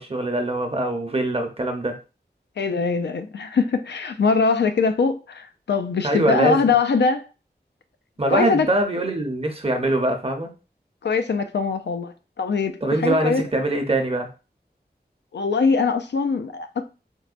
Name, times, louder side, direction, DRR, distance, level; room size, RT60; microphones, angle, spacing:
voice 1, 0.0-2.0 6.0-6.6 8.2-10.5 12.8-14.3, right 1 dB, 35° right, 0.7 m, -23 dB
voice 2, 2.6-7.3 8.3-8.7 11.0-13.4 15.3-16.8, left 4 dB, 85° left, 0.4 m, -22 dB
4.6 x 2.2 x 2.4 m
wide cardioid pair, 60°, 18 cm